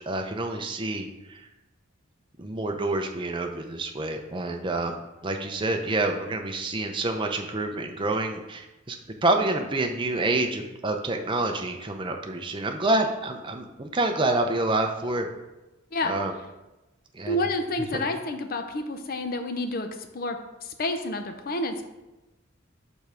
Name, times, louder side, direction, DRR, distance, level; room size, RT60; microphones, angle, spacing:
voice 1, 0.0-1.4 2.4-9.0 9.2-15.3 16.0-16.3 17.1-17.4 17.9-18.0, right 2 dB, 25° right, 4 dB, 0.6 m, -27 dB
voice 2, 17.3-19.9 20.1-21.8, left 1 dB, 45° left, 6 dB, 0.6 m, -29 dB
5.3 x 4.6 x 4.9 m, 1.0 s
head